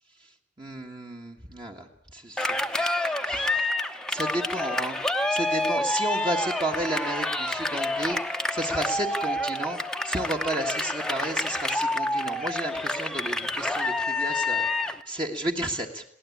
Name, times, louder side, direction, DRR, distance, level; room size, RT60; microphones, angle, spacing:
voice 1, 0.6-1.9 2.1-5.0 5.3-8.2 8.5-16.0, right 1 dB, 25° right, 2 dB, 1.7 m, -32 dB
Cheering, 2.4-15.0, left 2 dB, 5° left, 0.9 m, -28 dB
22.0 x 17.5 x 8.6 m, 0.70 s
head